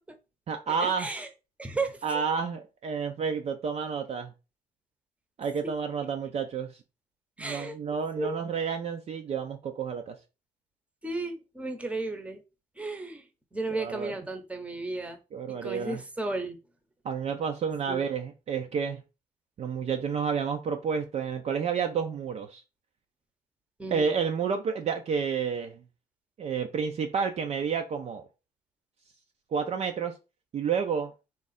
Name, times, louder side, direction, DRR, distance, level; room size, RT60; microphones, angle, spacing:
voice 1, 0.5-1.1 2.0-4.3 5.4-6.8 7.4-10.2 13.7-14.2 15.3-16.0 17.0-19.0 19.6-22.6 23.9-25.8 26.4-28.3 29.5-30.1 30.5-31.1, right 6 dB, 40° right, 0.5 m, -30 dB
voice 2, 1.6-2.2 7.4-7.7 8.2-8.4 11.0-12.4 12.8-13.2 13.5-15.2 15.5-16.6 17.9-18.0 23.8-24.1, right 2 dB, 5° right, 0.8 m, -34 dB
3.7 x 2.4 x 4.1 m
cardioid pair, 110°, 17 cm